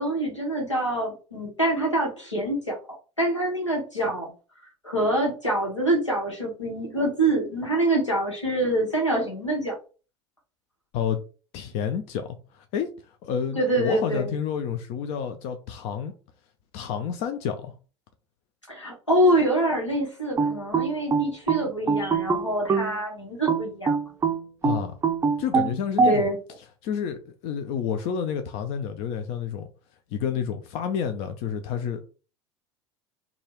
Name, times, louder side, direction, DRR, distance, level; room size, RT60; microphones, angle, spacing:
voice 1, 0.0-2.8 3.2-4.3 4.8-9.8 13.5-14.3 18.7-24.0 26.0-26.4, right 1 dB, 90° left, 1.3 m, -25 dB
voice 2, 11.5-12.9 13.2-16.1 16.7-17.7 24.6-25.0 25.4-26.3 26.8-29.7 30.1-32.0, left 7 dB, 45° left, 0.5 m, -29 dB
sound 1, 20.4-23.0 23.5-26.2, right 5 dB, 15° right, 0.5 m, -23 dB
3.9 x 2.3 x 3.0 m
figure-of-eight pair, 75°, 15 cm